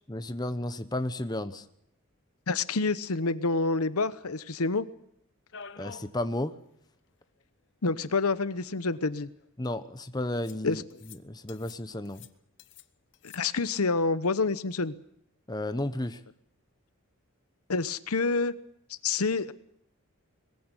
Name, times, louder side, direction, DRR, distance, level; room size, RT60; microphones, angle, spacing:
voice 1, 0.1-1.6 5.8-6.5 9.6-10.8 11.2-12.3 15.5-16.2, left 1 dB, 20° left, 10 dB, 0.9 m, -33 dB
voice 2, 2.5-4.9 7.8-9.3 10.6-11.0 13.2-14.9 17.7-18.5 18.9-19.5, left 3 dB, 85° left, 14 dB, 1.0 m, -28 dB
sound 1, 5.5-6.2 6.5-6.6 6.9-7.0 8.0-8.1 8.8-9.5 10.4-10.6 10.9-11.2 11.5-11.8 12.1-12.9 13.1-13.4, left 6 dB, 55° left, 0.9 m, -48 dB
21.0 x 15.5 x 9.8 m, 0.73 s
head